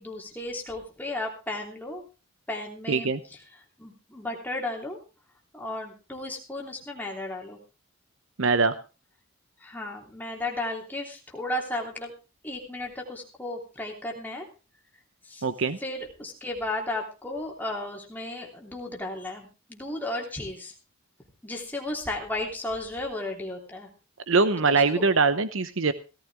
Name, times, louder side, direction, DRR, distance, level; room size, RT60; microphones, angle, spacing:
voice 1, 0.0-2.0 2.5-5.0 5.5-7.6 9.6-12.1 12.4-14.5 15.2-15.4 15.8-20.7 21.4-23.9 24.7-25.0, left 2 dB, 10° left, 0 dB, 3.1 m, -34 dB
voice 2, 2.9-3.2 8.4-8.7 15.4-15.8 24.3-25.9, right 4 dB, 65° right, 13 dB, 0.9 m, -22 dB
17.5 x 14.0 x 3.5 m, 0.32 s
head